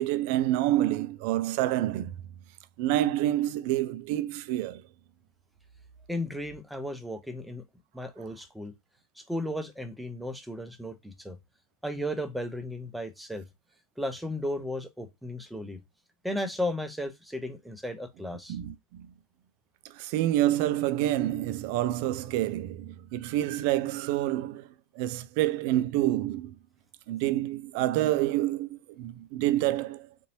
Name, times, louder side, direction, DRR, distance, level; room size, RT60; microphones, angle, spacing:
voice 1, 0.0-2.1 2.8-4.8 18.5-19.1 19.8-24.7 25.0-26.6 27.1-30.1, right 14 dB, 45° right, 0.3 m, -28 dB
voice 2, 6.1-7.6 7.9-8.7 9.2-11.4 11.8-13.4 14.0-15.8 16.2-18.6, left 1 dB, ahead, 0.7 m, -35 dB
3.9 x 2.7 x 2.7 m
figure-of-eight pair, 90°, 0 cm